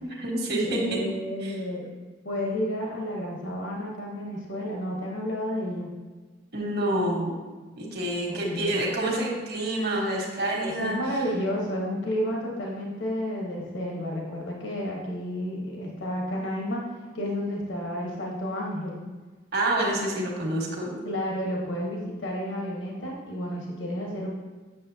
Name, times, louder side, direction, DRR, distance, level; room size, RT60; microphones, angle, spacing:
voice 1, 0.0-1.0 1.4-1.5 6.5-7.3 7.8-11.0 19.5-20.9, right 1 dB, 55° right, -2 dB, 1.5 m, -27 dB
voice 2, 0.6-1.9 2.2-5.9 8.3-8.8 10.6-16.8 17.1-19.0 21.0-24.3, equal, 70° left, -2 dB, 1.2 m, -31 dB
8.4 x 6.4 x 2.8 m, 1.3 s
head